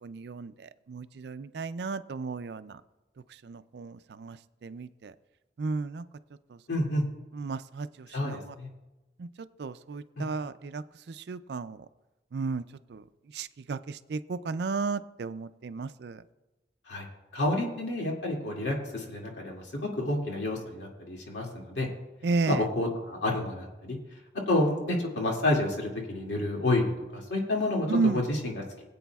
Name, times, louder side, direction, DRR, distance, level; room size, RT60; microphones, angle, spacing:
voice 1, 0.0-2.8 3.4-5.1 5.6-6.0 6.5-6.6 7.3-8.5 9.2-9.3 9.6-11.9 12.3-12.6 12.9-13.0 13.3-16.2 22.2-22.7 27.9-28.2, right 4 dB, 65° right, 14 dB, 0.4 m, -33 dB
voice 2, 6.7-7.0 8.1-8.7 10.2-10.3 16.9-17.1 17.3-21.9 22.5-24.0 24.5-27.9 28.1-28.8, left 2 dB, 80° left, -1 dB, 2.3 m, -29 dB
21.0 x 8.3 x 2.3 m, 1.0 s
head